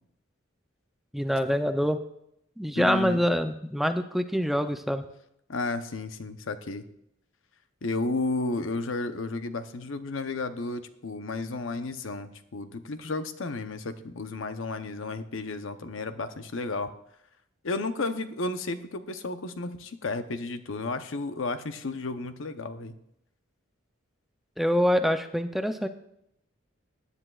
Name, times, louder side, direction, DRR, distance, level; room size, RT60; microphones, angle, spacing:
voice 1, 1.1-2.0 2.6-5.1 24.6-25.9, equal, ahead, 8 dB, 0.4 m, -25 dB
voice 2, 2.7-3.2 5.5-6.8 7.8-16.9 17.6-22.9, left 3 dB, 80° left, 10 dB, 0.8 m, -33 dB
17.5 x 10.0 x 2.4 m, 0.77 s
head